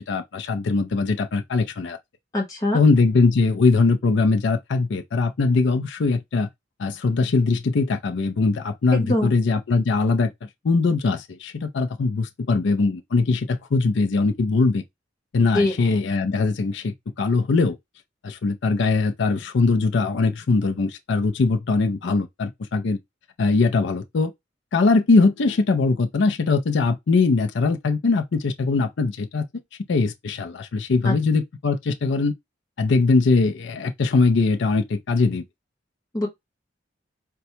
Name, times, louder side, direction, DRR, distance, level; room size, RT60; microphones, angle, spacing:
voice 1, 0.1-2.0 2.7-6.5 6.8-10.3 10.6-14.8 15.3-17.8 18.2-23.0 23.4-24.3 24.7-29.4 29.9-32.3 32.8-35.4, left 3 dB, 65° left, 0.4 m, -21 dB
voice 2, 2.3-2.8 9.0-9.3 15.5-16.0 31.0-31.1 36.1-36.3, left 1 dB, 20° left, 0.8 m, -23 dB
4.2 x 2.2 x 2.7 m
head